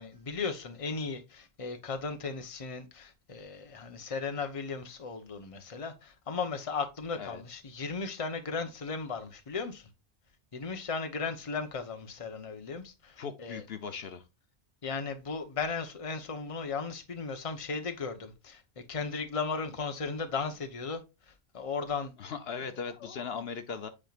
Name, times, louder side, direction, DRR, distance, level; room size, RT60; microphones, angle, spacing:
voice 1, 0.0-9.9 10.5-13.6 14.8-21.0 21.5-22.1 23.0-23.3, left 4 dB, 35° left, 0.9 m, -36 dB
voice 2, 13.2-14.2 22.2-23.9, left 6 dB, 70° left, 1.0 m, -38 dB
8.6 x 4.5 x 2.4 m
omnidirectional pair, 1.1 m